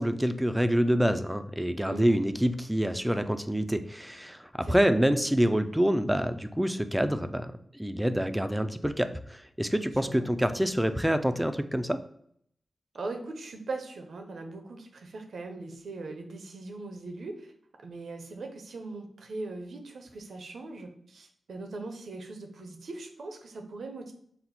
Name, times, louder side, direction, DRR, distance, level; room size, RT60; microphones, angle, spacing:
voice 1, 0.0-7.5 7.7-12.0, equal, 5° right, 9 dB, 0.4 m, -26 dB
voice 2, 1.8-2.2 4.6-4.8 10.0-10.2 12.9-17.5 17.8-24.1, right 3 dB, 75° right, 5 dB, 0.6 m, -40 dB
4.2 x 2.1 x 4.0 m, 0.66 s
cardioid pair, 55°, 0 cm